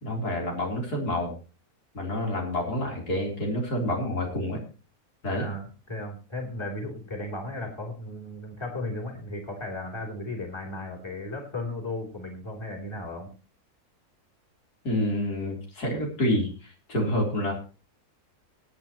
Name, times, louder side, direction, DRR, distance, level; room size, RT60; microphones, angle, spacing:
voice 1, 0.0-1.3 1.9-4.6 5.2-5.5 14.8-17.5, left 1 dB, 80° left, -1 dB, 4.2 m, -28 dB
voice 2, 5.3-13.3, left 2 dB, 15° left, -1 dB, 3.3 m, -35 dB
22.5 x 8.9 x 3.0 m, 0.34 s
omnidirectional pair, 1.6 m